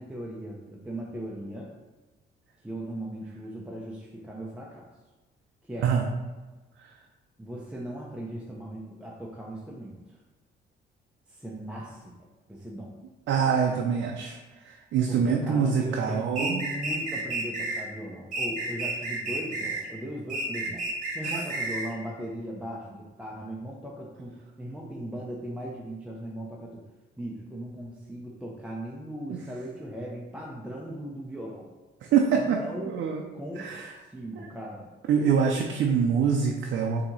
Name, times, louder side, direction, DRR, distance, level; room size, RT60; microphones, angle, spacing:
voice 1, 0.0-1.7 2.6-4.9 5.6-5.9 7.4-10.0 11.3-12.1 12.5-12.9 15.1-20.9 21.1-26.8 27.2-31.7 32.3-32.9 33.3-33.7 34.1-34.9, right 1 dB, 5° right, -3 dB, 0.5 m, -38 dB
voice 2, 13.3-14.4 14.7-16.6 21.2-21.5 29.3-29.4 32.1-32.6 32.9-33.2 33.6-33.9 34.4-34.5 35.1-37.1, right 6 dB, 70° right, 1 dB, 0.5 m, -25 dB
sound 1, 16.4-17.8 18.3-19.9 20.3-21.9, right 2 dB, 40° right, 1.1 m, -31 dB
4.2 x 2.8 x 3.8 m, 1.2 s
cardioid pair, 90°, 20 cm